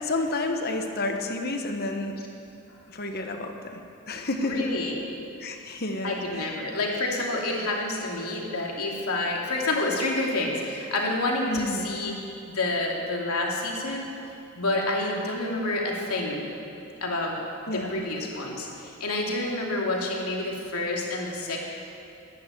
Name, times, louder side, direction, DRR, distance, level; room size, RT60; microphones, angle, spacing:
voice 1, 0.0-2.1 2.9-3.5 4.1-4.7 5.4-6.2 11.5-11.9 17.7-18.0, left 2 dB, 45° left, 4 dB, 1.2 m, -30 dB
voice 2, 4.4-5.0 6.0-12.2 12.5-14.0 14.5-16.5 17.0-17.4 17.7-21.6, left 2 dB, 85° left, -2 dB, 2.8 m, -28 dB
12.0 x 12.0 x 8.9 m, 2.7 s
head